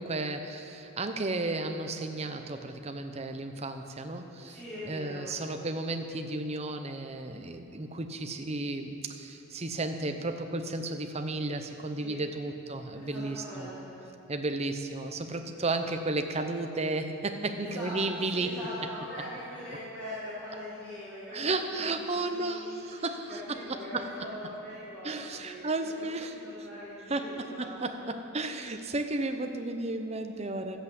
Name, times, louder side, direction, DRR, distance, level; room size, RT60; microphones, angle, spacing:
voice 1, 0.0-4.6 4.9-13.7 14.3-18.6 21.3-24.1 25.0-26.3 27.1-30.8, right 2 dB, 30° right, 6 dB, 0.7 m, -33 dB
voice 2, 4.4-5.3 12.0-12.2 12.9-14.0 17.5-25.7 26.3-28.0, left 1 dB, 5° left, -13 dB, 3.2 m, -42 dB
13.0 x 7.8 x 8.3 m, 2.9 s
head